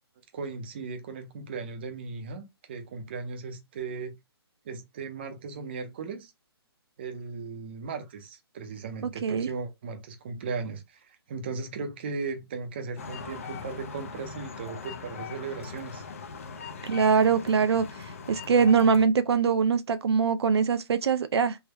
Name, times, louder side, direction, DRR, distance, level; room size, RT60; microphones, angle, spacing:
voice 1, 0.3-4.2 4.6-6.3 7.0-16.0, right 4 dB, 25° right, 0.5 m, -37 dB
sound 1, 13.0-19.1, left 5 dB, 35° left, 0.4 m, -40 dB
voice 2, 16.8-17.8 18.3-21.6, right 6 dB, 80° right, 0.4 m, -22 dB
3.4 x 2.1 x 3.3 m
hypercardioid pair, 170°, 13 cm